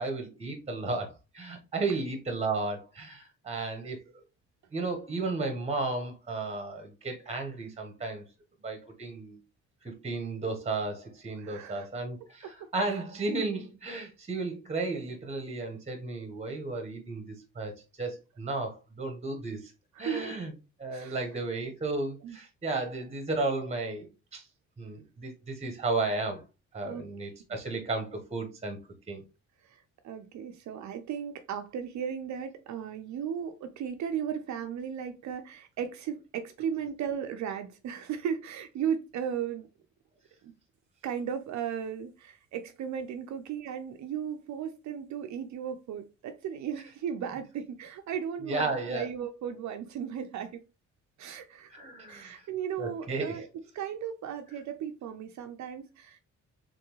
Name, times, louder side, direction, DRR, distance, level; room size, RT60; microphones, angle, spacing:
voice 1, 0.0-4.2 4.7-8.2 8.6-9.4 9.8-19.7 20.0-20.5 20.8-24.5 24.8-26.4 26.7-28.8 29.1-29.2 48.4-49.1 51.7-52.5 52.8-53.4, right 3 dB, 20° right, 1.1 m, -34 dB
voice 2, 11.4-11.9 12.4-13.0 19.9-20.4 20.9-21.2 22.2-22.4 26.8-27.0 29.6-39.7 40.4-40.5 41.0-50.6 51.2-51.7 52.1-53.5 53.7-56.2, right 8 dB, 70° right, 0.6 m, -36 dB
3.8 x 3.5 x 3.0 m
cardioid pair, 90°, 30 cm